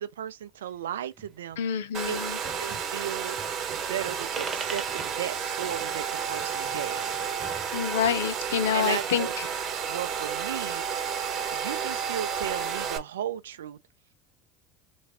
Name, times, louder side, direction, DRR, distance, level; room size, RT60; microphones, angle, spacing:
voice 1, 0.0-1.8 2.1-2.2 2.6-3.4 3.7-7.1 8.7-9.5 9.9-10.8 11.5-13.8, right 10 dB, 85° right, 0.4 m, -35 dB
sound 1, 1.2-1.8 2.1-2.2 2.4-2.9 3.4-3.7 4.0-8.4, right 4 dB, 30° right, 1.1 m, -42 dB
voice 2, 1.6-2.4 7.7-9.5, left 8 dB, 85° left, 0.5 m, -27 dB
Domestic sounds home sounds, 1.9-13.0, right 7 dB, 50° right, 0.9 m, -31 dB
3.4 x 3.1 x 2.8 m
hypercardioid pair, 80°, 0 cm